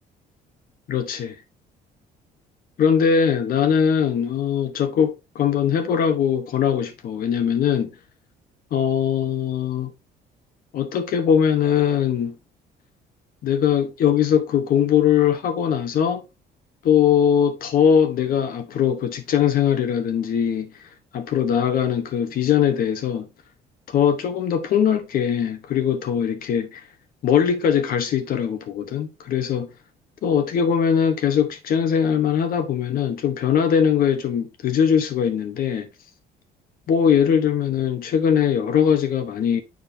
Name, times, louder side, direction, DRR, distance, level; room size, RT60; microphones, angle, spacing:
voice 1, 0.9-1.3 2.8-7.9 8.7-9.9 10.7-12.4 13.4-16.2 16.8-20.7 21.1-23.3 23.9-26.8 27.2-29.7 30.2-35.9 36.9-39.6, left 8 dB, 60° left, 1.0 m, -21 dB
7.2 x 5.3 x 2.7 m
cardioid pair, 110°, 17 cm